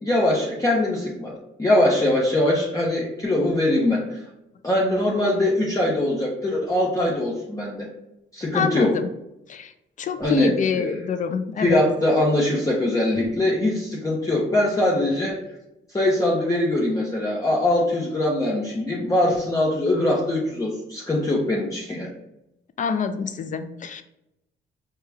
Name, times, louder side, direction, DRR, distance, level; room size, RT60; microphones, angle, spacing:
voice 1, 0.0-4.2 4.6-7.9 8.3-9.0 10.2-11.0 11.6-15.4 15.9-22.1, left 1 dB, 15° left, -4 dB, 0.8 m, -22 dB
voice 2, 8.5-9.1 9.5-9.7 10.0-11.8 22.8-24.0, left 6 dB, 40° left, 9 dB, 0.4 m, -26 dB
4.7 x 2.2 x 3.3 m, 0.88 s
cardioid pair, 90°, 20 cm